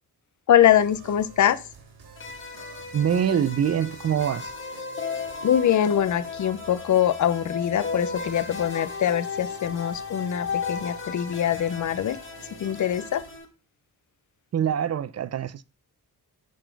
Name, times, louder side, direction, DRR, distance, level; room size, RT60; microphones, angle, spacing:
voice 1, 0.5-1.6 5.4-12.2 12.6-13.2, left 10 dB, 50° left, 0.6 m, -23 dB
sound 1, 0.6-13.4, right 4 dB, 70° right, 2.6 m, -48 dB
sound 2, 2.2-13.5, left 5 dB, 30° left, 1.2 m, -35 dB
voice 2, 2.9-4.5 14.5-15.6, right 8 dB, 40° right, 0.5 m, -24 dB
10.5 x 4.1 x 4.6 m
wide cardioid pair, 155°, 39 cm